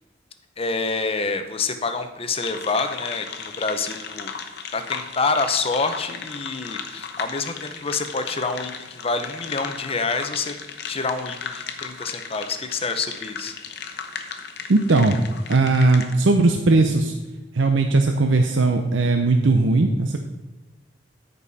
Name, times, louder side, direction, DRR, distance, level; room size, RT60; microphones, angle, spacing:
voice 1, 0.6-10.6 10.9-13.5, left 4 dB, 30° left, 7 dB, 0.8 m, -27 dB
sound 1, 2.4-16.1, left 6 dB, 60° left, 1.0 m, -36 dB
voice 2, 14.7-15.2 15.5-17.1 17.5-20.2, right 3 dB, 90° right, 5 dB, 0.7 m, -18 dB
13.5 x 5.5 x 4.2 m, 1.2 s
head